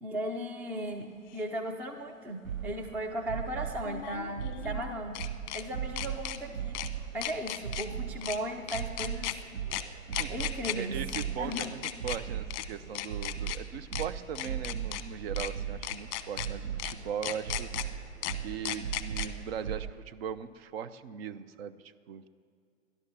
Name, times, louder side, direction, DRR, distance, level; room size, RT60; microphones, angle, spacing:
voice 1, 0.0-5.3 5.5-6.8 7.1-9.3 10.3-11.0 11.4-11.7, right 1 dB, 5° right, 5 dB, 0.4 m, -36 dB
sound 1, 1.3-1.4 3.8-5.6 6.0-6.4 6.8-6.9 7.2-7.9 8.2-8.4 8.7-9.4 9.7-9.8 10.1-10.8 11.1-11.2 11.5-12.2 12.5-12.7 13.0-13.6 13.9-14.1 14.4-15.0 15.4-15.5 15.8-16.5 16.8-16.9 17.2-17.9 18.2-18.3 18.7-19.3, left 15 dB, 35° left, 1.0 m, -35 dB
sound 2, 2.4-19.9, right 8 dB, 85° right, 0.8 m, -38 dB
voice 2, 10.1-10.5 10.7-17.7 18.4-22.3, right 8 dB, 50° right, 12 dB, 0.9 m, -39 dB
18.0 x 11.5 x 6.9 m, 2.3 s
hypercardioid pair, 115°, 39 cm